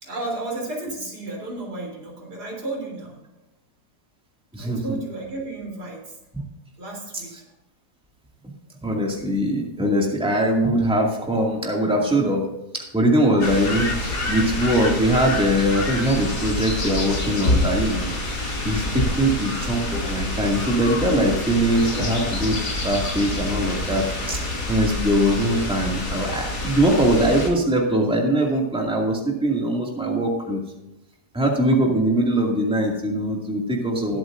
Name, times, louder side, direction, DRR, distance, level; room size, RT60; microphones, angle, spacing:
voice 1, 0.0-3.2 4.6-6.2 6.8-7.4, right 2 dB, 80° right, -2 dB, 4.2 m, -33 dB
voice 2, 8.8-12.5 12.7-18.1 18.4-22.6 22.8-30.6 31.3-34.2, right 1 dB, 5° right, -1 dB, 2.2 m, -22 dB
sound 1, 13.4-27.5, left 2 dB, 80° left, 3.5 m, -27 dB
21.5 x 7.9 x 2.6 m, 0.96 s
omnidirectional pair, 1.7 m